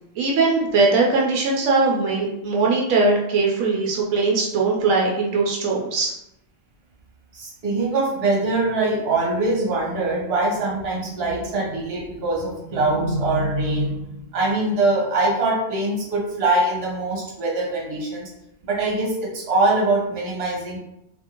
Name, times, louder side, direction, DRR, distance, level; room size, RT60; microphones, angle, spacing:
voice 1, 0.2-6.1, right 3 dB, 85° right, -2 dB, 1.0 m, -20 dB
voice 2, 7.3-18.3 18.6-20.8, right 2 dB, 55° right, -3 dB, 1.1 m, -23 dB
2.7 x 2.6 x 2.8 m, 0.82 s
omnidirectional pair, 1.4 m